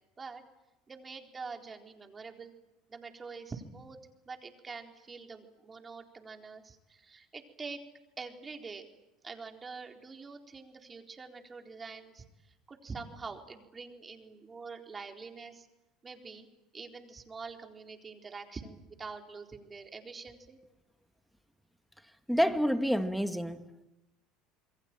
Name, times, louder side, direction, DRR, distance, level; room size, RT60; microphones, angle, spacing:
voice 1, 0.9-2.5 2.9-4.0 4.3-7.8 8.2-8.9 9.2-12.3 12.7-15.7 16.0-16.5 16.7-20.6, right 4 dB, 25° right, 4.2 m, -45 dB
voice 2, 22.3-23.6, equal, ahead, 2.2 m, -28 dB
27.5 x 22.0 x 9.2 m
hypercardioid pair, 75°, 0 cm